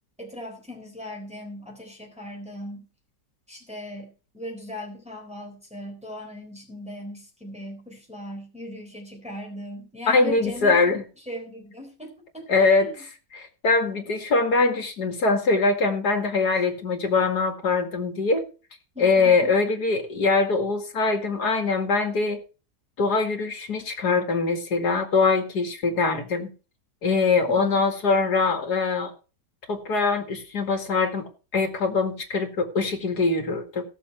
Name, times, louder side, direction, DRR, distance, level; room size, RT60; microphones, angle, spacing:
voice 1, 0.2-2.9 3.5-10.8 11.3-12.9 18.9-19.5 27.5-27.8, left 1 dB, 5° right, 0 dB, 3.8 m, -39 dB
voice 2, 10.1-11.0 12.5-18.5 19.0-22.4 23.0-26.5 27.0-29.1 29.7-33.8, left 4 dB, 65° left, 5 dB, 2.6 m, -23 dB
17.0 x 7.0 x 4.4 m, 0.35 s
omnidirectional pair, 1.8 m